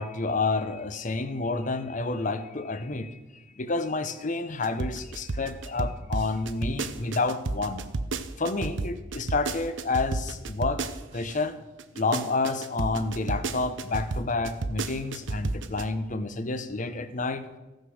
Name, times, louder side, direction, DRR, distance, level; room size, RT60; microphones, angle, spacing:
voice 1, 0.0-3.2 3.6-7.8 8.4-10.8 11.1-11.6 11.9-17.4, left 3 dB, 40° left, 11 dB, 0.8 m, -29 dB
sound 1, 4.6-11.3 11.8-15.8, right 3 dB, 65° right, 0.7 m, -31 dB
15.5 x 6.5 x 6.3 m, 1.1 s
head